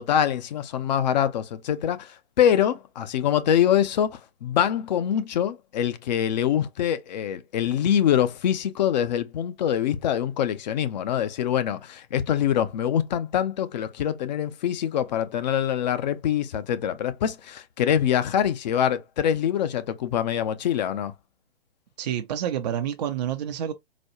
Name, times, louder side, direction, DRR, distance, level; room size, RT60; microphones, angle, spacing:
voice 1, 0.0-21.1, left 9 dB, 45° left, 0.6 m, -24 dB
voice 2, 22.0-23.7, right 10 dB, 45° right, 0.4 m, -28 dB
4.0 x 2.3 x 2.9 m
figure-of-eight pair, 125°, 32 cm